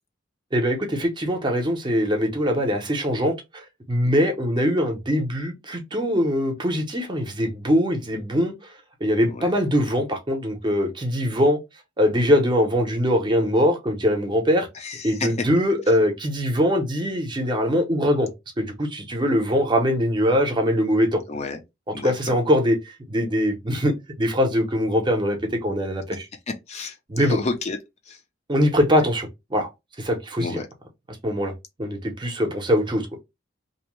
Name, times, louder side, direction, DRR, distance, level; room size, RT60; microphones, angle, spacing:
voice 1, 0.5-8.5 9.0-11.6 12.0-14.7 15.0-18.3 18.6-21.2 22.0-26.3 27.1-27.4 28.5-29.7 30.0-30.6 31.2-31.5 31.8-33.1, equal, 25° right, 0.6 m, -22 dB
voice 2, 14.7-15.5 21.3-21.6 21.9-22.3 26.5-27.8 28.1-28.2 30.4-30.7, left 3 dB, 35° left, 0.4 m, -31 dB
2.6 x 2.0 x 2.9 m
head